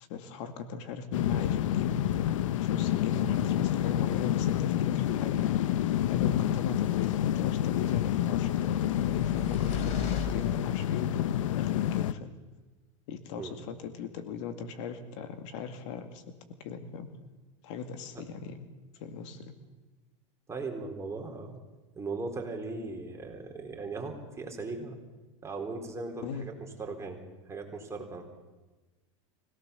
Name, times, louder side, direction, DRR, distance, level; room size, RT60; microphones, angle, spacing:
voice 1, 0.1-2.0 2.6-5.5 6.0-11.3 11.5-12.4 13.1-16.2 16.6-17.1 17.6-18.7 19.0-19.5 26.2-26.5, left 6 dB, 65° left, 8 dB, 2.3 m, -39 dB
sound 1, 1.1-12.1, left 12 dB, 85° left, 0.8 m, -28 dB
sound 2, 8.8-11.2, left 3 dB, 45° left, 3.6 m, -38 dB
voice 2, 20.5-21.6 22.0-25.0 25.4-27.2 27.5-28.3, right 3 dB, 15° right, 2 dB, 4.1 m, -38 dB
25.0 x 17.5 x 7.1 m, 1.2 s
supercardioid pair, 120°, 16 cm